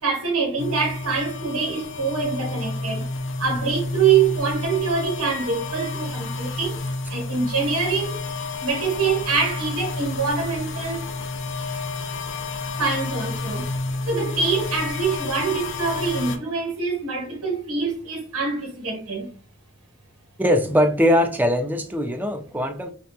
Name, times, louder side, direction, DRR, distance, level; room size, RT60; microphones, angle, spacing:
voice 1, 0.0-6.8 7.1-8.2 8.6-11.0 12.8-13.8 14.1-19.3, right 5 dB, 70° right, 1.4 m, -25 dB
sound 1, 0.6-16.4, left 3 dB, 55° left, 0.5 m, -30 dB
voice 2, 20.4-22.9, equal, 10° right, 0.5 m, -21 dB
6.0 x 2.4 x 2.7 m
head